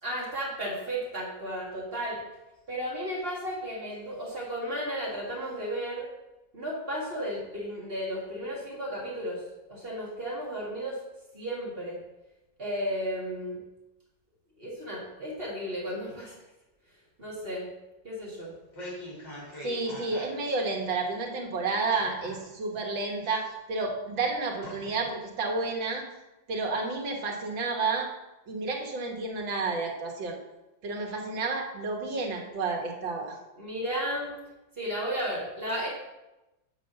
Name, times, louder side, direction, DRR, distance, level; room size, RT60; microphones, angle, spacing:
voice 1, 0.0-2.2 2.7-6.1 6.5-9.4 9.7-11.0 11.3-12.0 12.6-13.6 14.6-16.4 17.2-17.7 18.0-18.5 33.6-34.3 34.8-35.9, equal, 30° right, -4 dB, 2.1 m, -34 dB
sound 1, 18.4-20.5 20.8-20.9 21.9-22.8 23.2-23.9 24.2-24.3 24.6-25.1 25.5-25.6, equal, 70° left, 3.9 m, -42 dB
voice 2, 19.6-26.0 26.5-28.1 28.5-30.4 30.8-33.4, right 3 dB, 80° right, 1 dB, 2.1 m, -31 dB
7.5 x 5.1 x 6.8 m, 0.99 s
omnidirectional pair, 2.1 m